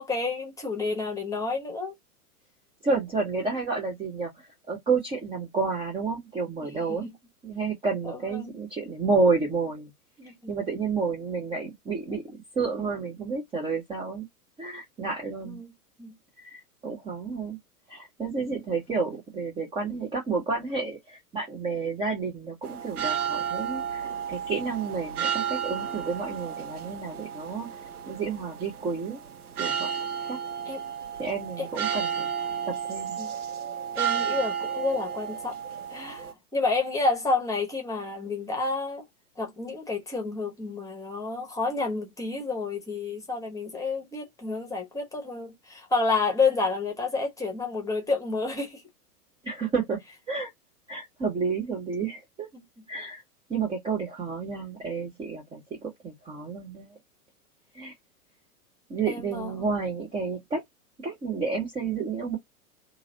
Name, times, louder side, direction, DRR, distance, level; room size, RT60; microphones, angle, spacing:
voice 1, 0.0-1.9 6.9-7.1 8.0-8.5 10.2-10.6 15.4-15.7 16.0-16.1 30.7-30.8 31.6-31.7 33.2-33.3 33.9-35.5 35.9-39.0 39.4-48.8 52.5-52.6 59.1-59.7, left 3 dB, 5° left, 1.0 m, -30 dB
voice 2, 2.8-7.1 7.4-9.9 10.5-14.3 14.6-15.6 16.4-17.6 17.9-29.2 29.6-29.9 30.3-30.4 31.2-32.3 32.7-33.2 49.4-50.0 50.3-50.5 50.9-52.5 52.9-53.2 53.5-57.0 57.7-57.9 58.9-60.6 61.0-62.4, right 4 dB, 10° right, 0.6 m, -30 dB
sound 1, 22.6-36.3, right 8 dB, 70° right, 1.0 m, -32 dB
2.9 x 2.6 x 2.6 m
figure-of-eight pair, 100°, 46 cm